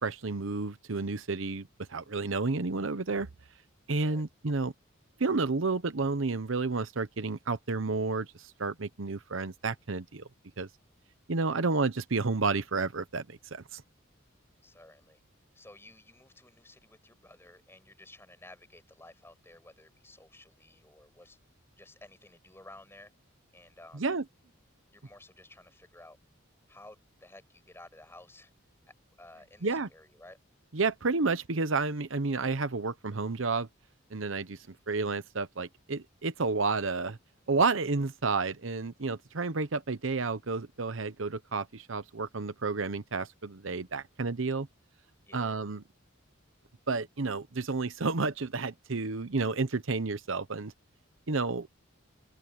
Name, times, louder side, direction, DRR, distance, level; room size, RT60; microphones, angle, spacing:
voice 1, 0.0-3.3 3.9-4.7 5.2-10.3 10.6-10.7 11.3-13.8 23.9-24.2 29.6-29.9 30.7-33.7 34.1-37.2 37.5-44.7 45.3-45.8 46.9-50.7 51.3-51.7, right 3 dB, 70° right, 0.9 m, -31 dB
voice 2, 14.6-15.2 15.5-21.4 21.8-23.1 23.5-24.1 24.9-26.2 26.7-28.5 28.9-30.4 34.5-34.9 45.3-45.6, left 2 dB, 10° left, 5.9 m, -54 dB
open air
head